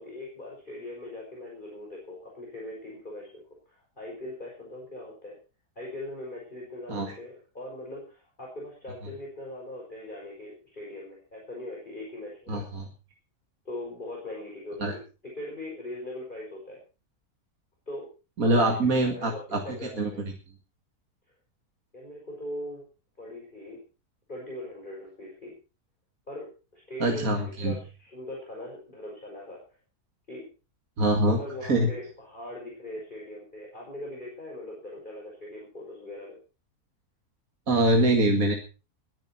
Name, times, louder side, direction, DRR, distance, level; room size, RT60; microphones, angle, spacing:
voice 1, 0.0-3.3 3.7-5.3 5.8-12.6 13.7-15.0 15.4-16.8 17.9-18.1 18.4-20.2 21.9-22.8 23.2-23.8 24.3-25.5 26.3-26.5 26.7-27.3 27.6-29.6 30.3-30.5 31.2-36.4, left 1 dB, 30° left, -2 dB, 5.7 m, -40 dB
voice 2, 12.5-12.9 14.8-14.9 18.4-20.3 27.0-27.7 31.0-31.4 31.7-31.9 37.7-38.5, right 1 dB, 60° right, 2 dB, 2.5 m, -24 dB
21.5 x 11.0 x 4.4 m, 0.33 s
omnidirectional pair, 1.6 m